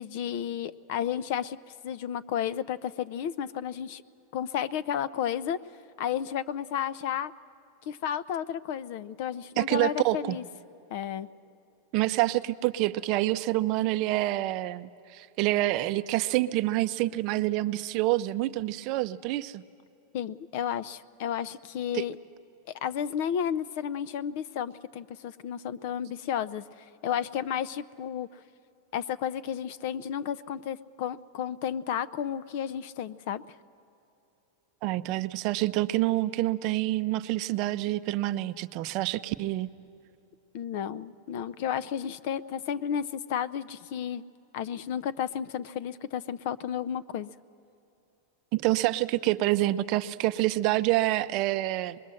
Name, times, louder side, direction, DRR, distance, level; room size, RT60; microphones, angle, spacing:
voice 1, 0.0-1.6 1.8-4.0 4.3-5.6 6.0-7.3 7.9-10.4 10.9-11.3 20.1-22.2 22.8-26.6 27.0-28.3 28.9-33.4 40.5-44.2 44.5-47.3, left 9 dB, 50° left, 18 dB, 0.5 m, -32 dB
voice 2, 9.6-10.4 11.9-19.6 21.9-22.0 34.8-39.7 48.5-52.0, right 16 dB, 40° right, 12 dB, 0.5 m, -27 dB
24.5 x 21.0 x 7.6 m, 2.8 s
supercardioid pair, 160°, 0 cm